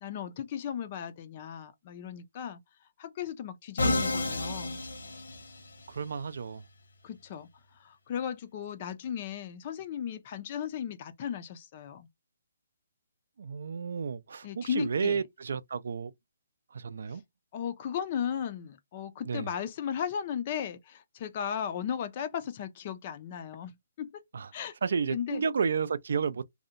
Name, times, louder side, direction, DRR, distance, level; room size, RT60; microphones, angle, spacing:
voice 1, 0.0-2.6 3.0-4.8 7.0-7.5 7.8-12.1 14.4-15.2 17.5-24.2 24.5-24.7 25.1-25.4, left 8 dB, 35° left, 0.4 m, -36 dB
Musical instrument, 3.8-5.9, left 2 dB, 85° left, 1.0 m, -31 dB
voice 2, 5.9-6.6 13.4-16.1 16.7-17.2 19.2-19.5 24.3-24.5 24.8-26.4, right 6 dB, 65° right, 0.3 m, -31 dB
2.7 x 2.1 x 2.4 m
hypercardioid pair, 160°, 0 cm